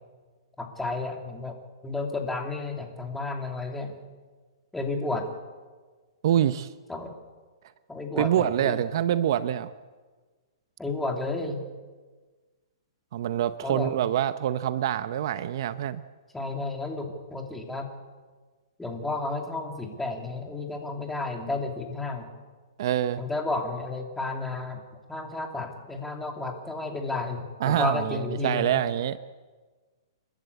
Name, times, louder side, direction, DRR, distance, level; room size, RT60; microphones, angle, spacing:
voice 1, 0.6-1.6 1.8-3.9 4.7-5.3 6.9-7.1 7.9-8.8 10.8-11.6 13.6-13.9 16.3-17.9 18.8-22.3 23.2-24.8 25.1-28.8, left 3 dB, 5° left, 2 dB, 2.7 m, -32 dB
voice 2, 6.2-6.7 8.2-9.7 13.1-16.0 22.8-23.2 27.6-29.2, right 11 dB, 55° right, 13 dB, 0.8 m, -25 dB
29.0 x 12.0 x 8.3 m, 1.4 s
hypercardioid pair, 150°, 3 cm